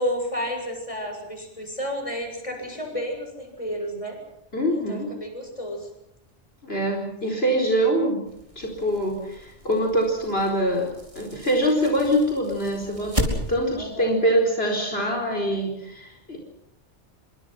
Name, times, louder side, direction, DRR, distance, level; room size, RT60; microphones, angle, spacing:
voice 1, 0.0-4.2 4.7-5.9 7.2-7.5 13.8-14.1, equal, 30° left, 3 dB, 7.5 m, -31 dB
voice 2, 4.5-5.1 6.6-8.2 8.6-16.4, equal, 55° left, 0 dB, 4.7 m, -24 dB
sound 1, 8.3-13.9, equal, 25° right, 4.8 m, -34 dB
27.5 x 25.0 x 6.0 m, 0.82 s
omnidirectional pair, 1.2 m